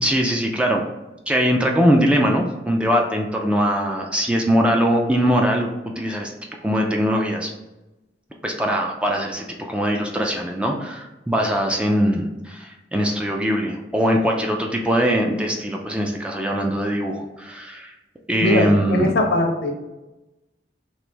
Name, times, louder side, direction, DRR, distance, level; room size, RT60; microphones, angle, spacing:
voice 1, 0.0-0.8 1.3-5.7 6.0-6.3 6.6-7.5 8.4-17.9 18.3-19.1, equal, 5° right, 1 dB, 0.3 m, -21 dB
voice 2, 18.4-19.7, left 1 dB, 65° left, 3 dB, 0.6 m, -20 dB
3.1 x 2.5 x 3.3 m, 1.0 s
head